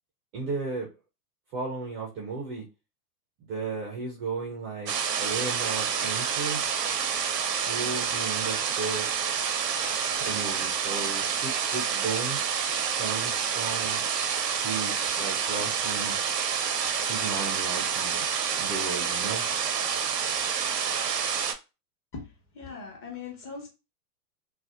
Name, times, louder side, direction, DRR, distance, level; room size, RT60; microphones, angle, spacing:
voice 1, 0.3-0.9 1.5-2.6 3.5-4.9 5.2-6.7 7.6-9.1 10.2-12.4 13.0-14.0 14.6-16.2 17.1-18.3 18.6-19.4, right 4 dB, 20° right, 0.4 m, -34 dB
sound 1, 4.9-21.5, right 7 dB, 85° right, 0.6 m, -28 dB
voice 2, 22.1-23.7, left 5 dB, 25° left, 1.0 m, -40 dB
2.5 x 2.0 x 2.4 m
hypercardioid pair, 100°, 48 cm